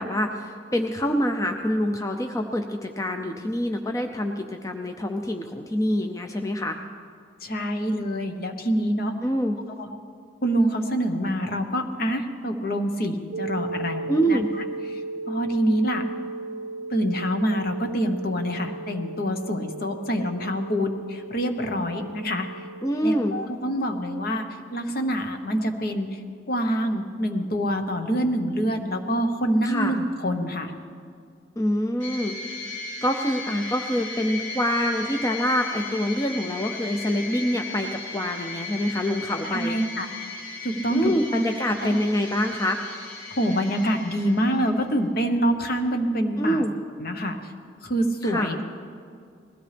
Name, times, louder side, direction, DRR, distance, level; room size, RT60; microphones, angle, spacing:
voice 1, 0.0-6.8 9.2-9.6 14.1-14.5 22.8-23.4 29.6-29.9 31.6-32.4 33.0-39.8 40.9-42.8 46.4-46.7 48.2-48.5, equal, 15° left, 4 dB, 0.5 m, -26 dB
voice 2, 7.4-9.1 9.8-9.9 10.4-14.4 14.9-15.0 15.3-16.0 16.9-22.5 23.0-24.4 24.7-26.2 26.5-30.7 39.5-40.1 40.3-41.4 41.8-42.0 43.4-46.6 47.0-47.5 47.8-48.6, equal, 55° left, 6 dB, 1.1 m, -26 dB
sound 1, 13.3-23.2, right 3 dB, 70° right, 0.6 m, -36 dB
sound 2, 32.0-44.8, left 3 dB, 85° left, 3.8 m, -37 dB
20.5 x 15.5 x 3.4 m, 2.3 s
head